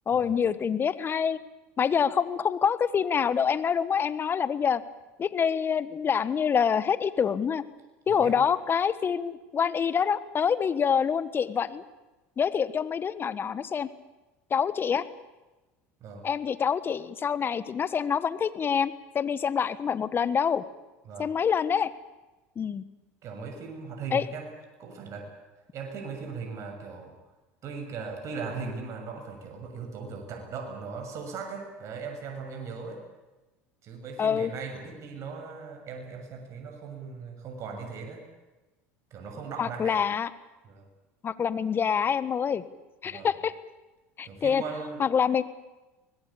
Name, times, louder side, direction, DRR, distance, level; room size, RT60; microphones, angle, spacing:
voice 1, 0.1-1.4 1.8-4.8 5.2-7.6 8.1-11.8 12.4-13.9 14.5-15.1 16.2-20.6 21.2-21.9 22.6-22.8 24.1-24.2 34.2-34.5 39.6-40.3 41.2-42.6 43.0-43.5 44.2-44.6 45.0-45.4, left 7 dB, 35° left, 15 dB, 1.5 m, -26 dB
voice 2, 8.1-8.4 16.0-16.3 21.0-21.3 23.2-24.5 24.8-25.3 25.7-27.1 27.6-33.0 33.8-38.2 39.1-40.0 40.6-40.9 43.0-43.3 44.2-45.0, right 5 dB, 50° right, 3 dB, 6.8 m, -38 dB
24.0 x 19.5 x 8.7 m, 1.1 s
supercardioid pair, 90°, 7 cm